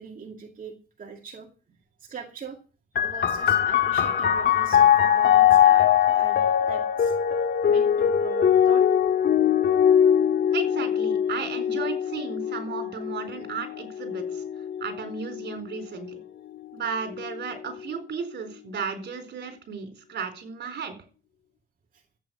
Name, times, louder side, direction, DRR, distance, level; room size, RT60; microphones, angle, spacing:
voice 1, 0.0-2.6 2.9-6.4 6.7-7.1 7.7-8.9 21.9-22.0, right 5 dB, 45° right, 2 dB, 2.2 m, -42 dB
sound 1, 3.0-16.2 17.1-17.8, left 9 dB, 60° left, 1.9 m, -22 dB
voice 2, 10.5-14.4 14.8-16.2 16.7-21.0, right 6 dB, 60° right, 8 dB, 4.3 m, -34 dB
14.0 x 8.5 x 7.0 m, 0.37 s
cardioid pair, 90°, 20 cm